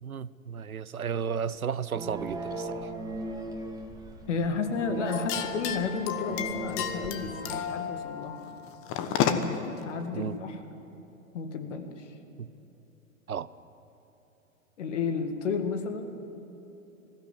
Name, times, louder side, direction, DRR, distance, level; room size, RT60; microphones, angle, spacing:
voice 1, 0.0-2.9 10.1-10.4 12.4-12.5 13.3-13.5, right 7 dB, 85° right, 18 dB, 0.7 m, -33 dB
sound 1, 1.9-7.6, right 2 dB, 10° right, 2.2 m, -38 dB
voice 2, 4.3-8.3 9.2-10.6 11.3-12.1 14.8-16.1, left 5 dB, 60° left, 7 dB, 2.0 m, -32 dB
sound 2, 5.1-9.7, left 9 dB, 30° left, 1.3 m, -32 dB
20.0 x 16.0 x 9.8 m, 3.0 s
figure-of-eight pair, 105°, 41 cm